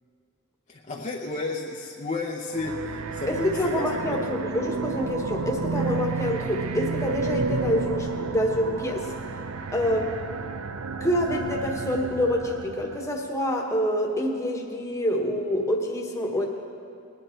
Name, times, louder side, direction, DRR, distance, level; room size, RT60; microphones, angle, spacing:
voice 1, 0.7-3.7 4.1-4.3, left 3 dB, 35° left, -1 dB, 0.7 m, -32 dB
sound 1, 2.5-13.1, right 4 dB, 85° right, 0.7 m, -31 dB
voice 2, 3.3-9.1 9.7-10.1 11.0-16.5, equal, 15° left, 1 dB, 1.2 m, -26 dB
20.0 x 10.0 x 4.5 m, 2.5 s
head